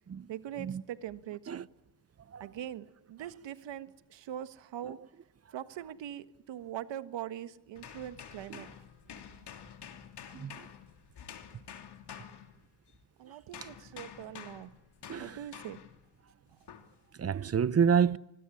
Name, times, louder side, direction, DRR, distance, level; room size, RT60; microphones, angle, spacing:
voice 1, 0.3-1.7 2.4-5.0 5.5-8.8 13.2-14.7 15.2-15.8, right 11 dB, 70° right, 1.6 m, -42 dB
sound 1, 7.8-13.0 13.5-16.0 16.7-17.0, left 8 dB, 60° left, 3.0 m, -49 dB
voice 2, 17.2-18.2, right 7 dB, 30° right, 0.9 m, -28 dB
25.5 x 19.0 x 9.9 m
supercardioid pair, 70°, 46 cm